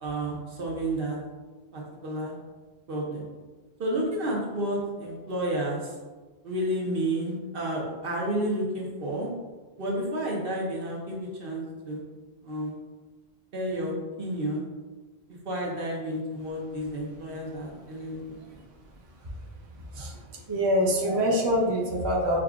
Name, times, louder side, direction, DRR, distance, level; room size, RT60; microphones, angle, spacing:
voice 1, 0.0-1.2 1.7-2.4 2.9-3.2 3.8-5.9 6.4-9.3 9.8-12.0 12.4-12.8 13.5-14.6 15.4-18.4, right 1 dB, 60° right, -3 dB, 1.0 m, -31 dB
voice 2, 19.8-22.4, equal, 30° right, -3 dB, 0.6 m, -25 dB
6.3 x 2.3 x 2.4 m, 1.3 s
omnidirectional pair, 1.1 m